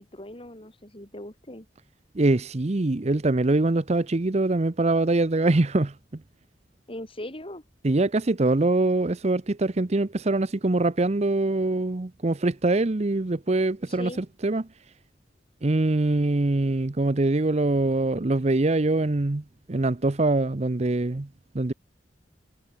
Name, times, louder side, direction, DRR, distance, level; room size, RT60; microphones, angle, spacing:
voice 1, 0.0-1.7 6.9-7.6 13.9-14.3, left 1 dB, 30° left, 6.5 m, -39 dB
voice 2, 2.1-6.2 7.8-14.7 15.6-21.3 21.5-21.7, right 2 dB, 40° right, 0.7 m, -23 dB
head